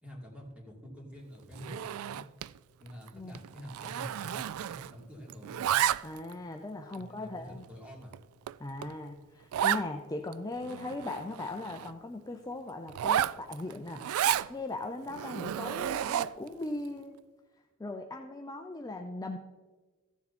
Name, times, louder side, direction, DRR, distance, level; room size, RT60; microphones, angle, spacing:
voice 1, 0.0-2.2 2.8-5.6 7.0-8.2, equal, 5° right, -2 dB, 2.7 m, -47 dB
Zipper (clothing), 1.5-2.6 2.9-3.1 3.3-5.0 5.3-6.3 6.9-7.0 7.6-7.7 8.1-8.2 8.5-8.6 8.8-8.9 9.5-9.9 10.3-10.4 10.6-11.9 12.9-14.5 15.1-16.5, right 10 dB, 70° right, 0.3 m, -32 dB
voice 2, 6.0-7.7 8.6-14.0 14.5-17.2 17.8-19.4, left 2 dB, 15° left, 4 dB, 0.5 m, -39 dB
15.0 x 7.1 x 4.2 m, 1.3 s
head